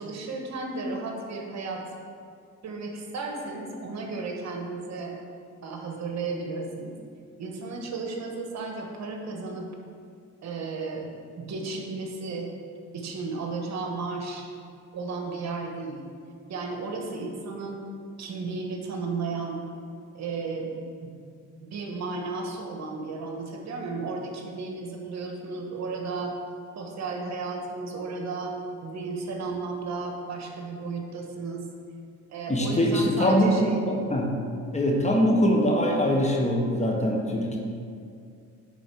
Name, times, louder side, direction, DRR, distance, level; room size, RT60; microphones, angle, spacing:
voice 1, 0.0-1.8 2.6-5.1 5.6-7.0 7.4-9.7 10.4-11.1 11.4-12.5 12.9-14.5 14.9-16.0 16.5-17.8 18.2-19.6 20.1-20.7 21.0-21.1 21.6-26.4 26.7-28.5 28.8-31.7 32.3-33.8, right 3 dB, 65° right, 1 dB, 1.3 m, -34 dB
voice 2, 32.5-34.4 34.7-37.6, equal, 25° left, 0 dB, 1.4 m, -23 dB
10.0 x 4.2 x 4.7 m, 2.3 s
cardioid pair, 90°, 30 cm